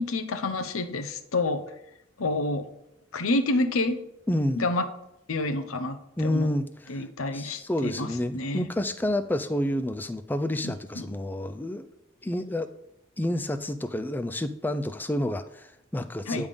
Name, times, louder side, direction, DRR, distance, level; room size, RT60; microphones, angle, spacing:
voice 1, 0.0-1.6 2.2-2.7 3.1-4.0 4.6-4.9 5.3-6.0 6.2-6.5 6.9-8.7 10.6-11.1 16.3-16.5, left 2 dB, 90° left, 7 dB, 0.8 m, -28 dB
voice 2, 4.3-4.6 6.2-7.1 7.3-11.8 12.2-12.7 13.2-16.5, left 1 dB, 10° left, 9 dB, 0.3 m, -29 dB
9.9 x 3.5 x 5.2 m, 0.82 s
head